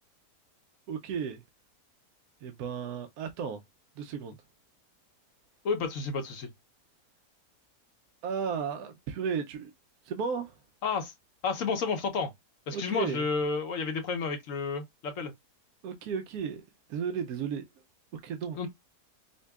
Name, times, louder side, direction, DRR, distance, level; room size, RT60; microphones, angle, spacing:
voice 1, 0.9-1.4 2.4-3.6 4.0-4.3 8.2-9.7 10.0-10.6 12.7-13.3 15.8-16.6 16.9-17.7 18.1-18.7, right 6 dB, 75° right, 1.1 m, -34 dB
voice 2, 5.6-6.5 10.8-11.1 11.4-12.3 12.7-15.3 18.6-18.7, left 5 dB, 60° left, 1.1 m, -31 dB
5.2 x 2.2 x 2.3 m
omnidirectional pair, 1.7 m